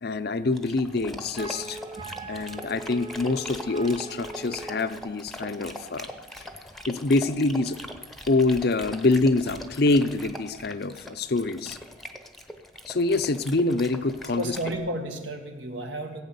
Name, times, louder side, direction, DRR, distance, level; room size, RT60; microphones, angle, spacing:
voice 1, 0.0-1.8 2.3-6.1 6.4-6.5 6.9-7.8 8.3-11.8 12.9-14.6, left 2 dB, 55° left, 11 dB, 0.6 m, -25 dB
Dog, 0.5-14.8, equal, ahead, 0.9 m, -41 dB
Wind instrument woodwind instrument, 1.3-5.0, right 3 dB, 25° right, 0.5 m, -41 dB
voice 2, 2.0-2.3 14.3-16.2, right 1 dB, 70° right, 4 dB, 1.8 m, -33 dB
16.5 x 8.7 x 6.9 m, 1.2 s
head